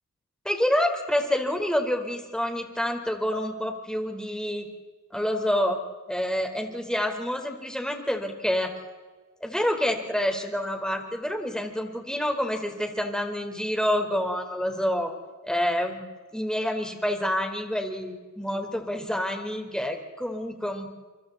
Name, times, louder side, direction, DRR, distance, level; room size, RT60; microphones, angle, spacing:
voice 1, 0.4-4.7 5.1-5.8 6.1-8.7 9.4-15.1 15.4-16.0 16.3-20.9, equal, ahead, 3 dB, 4.5 m, -28 dB
29.0 x 25.0 x 4.3 m, 1.3 s
wide cardioid pair, 50°, 31 cm